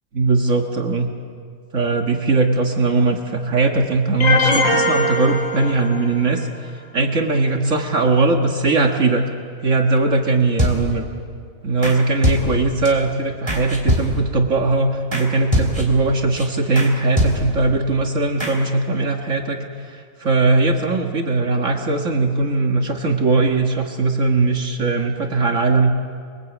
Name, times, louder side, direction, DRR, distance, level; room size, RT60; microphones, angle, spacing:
voice 1, 0.1-1.1 1.7-9.3 9.6-11.1 11.6-25.9, right 3 dB, 65° right, 3 dB, 1.9 m, -19 dB
sound 1, 4.2-6.3, left 2 dB, 85° left, 3.2 m, -20 dB
sound 2, 10.6-11.1 11.8-12.0 12.2-12.9 13.5-14.4 15.1-15.3 15.5-16.0 16.4-16.5 16.7-16.9 17.2-17.7 18.4-18.5, equal, 20° right, 3.9 m, -22 dB
28.0 x 23.0 x 8.3 m, 2.2 s
omnidirectional pair, 1.4 m